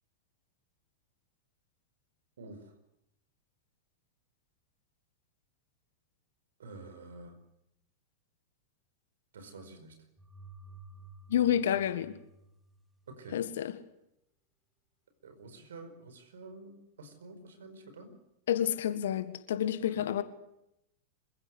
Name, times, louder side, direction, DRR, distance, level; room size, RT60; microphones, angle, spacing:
voice 1, 6.6-7.4 9.3-9.9 13.1-13.4 15.2-18.2 20.0-20.1, right 3 dB, 65° right, 9 dB, 4.8 m, -49 dB
sound 1, 10.2-13.1, right 3 dB, 5° right, 2.5 m, -52 dB
voice 2, 11.3-12.2 13.3-13.7 18.5-20.2, left 10 dB, 60° left, 13 dB, 1.7 m, -29 dB
26.5 x 16.0 x 9.7 m, 0.83 s
figure-of-eight pair, 90°, 0 cm